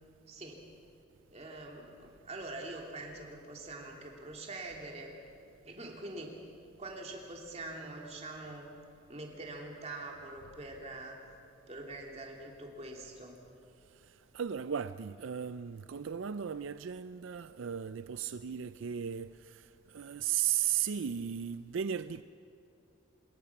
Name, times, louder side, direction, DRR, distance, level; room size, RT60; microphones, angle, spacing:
voice 1, 0.3-0.6 1.3-5.1 5.6-6.4 6.8-8.7 9.1-11.2 11.7-13.4, right 2 dB, 30° right, 2.9 m, -44 dB
voice 2, 14.3-22.2, right 8 dB, 70° right, 0.4 m, -35 dB
26.0 x 21.0 x 6.0 m
head